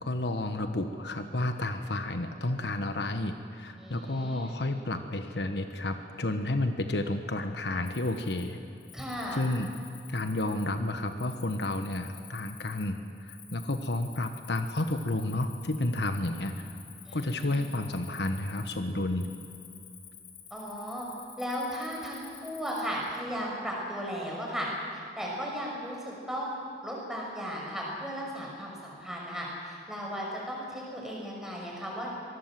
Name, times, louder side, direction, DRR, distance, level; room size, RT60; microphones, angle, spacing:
voice 1, 0.0-8.6 9.3-9.7 10.1-16.8 17.1-19.3, left 2 dB, 70° left, 7 dB, 1.3 m, -31 dB
voice 2, 3.8-4.6 8.9-9.4 17.0-17.7 20.5-21.1 21.4-32.1, equal, 5° right, -3 dB, 5.9 m, -36 dB
Cricket, 7.8-23.2, left 8 dB, 85° left, 4.1 m, -51 dB
25.0 x 19.5 x 7.6 m, 2.6 s
head